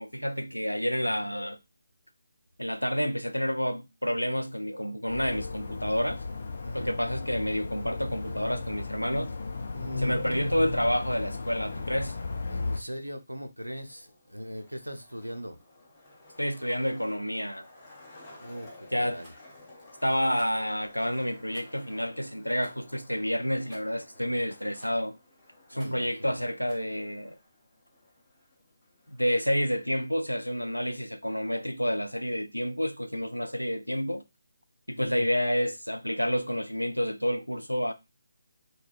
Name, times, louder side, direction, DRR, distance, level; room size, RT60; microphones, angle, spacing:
voice 1, 0.0-1.6 2.6-6.2 6.7-9.3 10.0-12.2 16.4-17.7 18.9-19.2 20.0-25.2 25.7-27.4 29.1-34.2 34.9-37.9, equal, 85° left, 0.4 m, -29 dB
sound 1, 5.1-12.8, left 3 dB, 45° left, 0.6 m, -35 dB
voice 2, 9.7-10.6 12.5-15.6 18.4-19.3 24.3-24.4 25.7-26.4 34.9-35.3, equal, 85° right, 0.5 m, -40 dB
Skateboard, 13.7-30.7, left 2 dB, 15° left, 0.8 m, -54 dB
Rattle, 19.2-19.4 20.3-20.6 21.5-21.9 22.6-22.8 23.7-24.0 24.8-25.1 25.8-26.1 26.7-26.9, equal, 10° right, 1.0 m, -55 dB
3.4 x 2.2 x 2.4 m
figure-of-eight pair, 150°, 0 cm